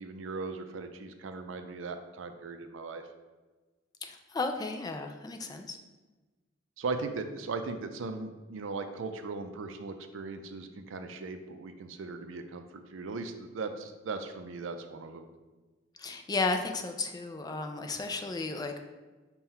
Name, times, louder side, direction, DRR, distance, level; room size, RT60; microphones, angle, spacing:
voice 1, 0.0-3.0 6.8-15.2, right 4 dB, 80° right, 7 dB, 0.4 m, -38 dB
voice 2, 4.0-5.8 16.0-18.8, left 3 dB, 20° left, 5 dB, 0.3 m, -34 dB
5.5 x 2.2 x 4.3 m, 1.2 s
head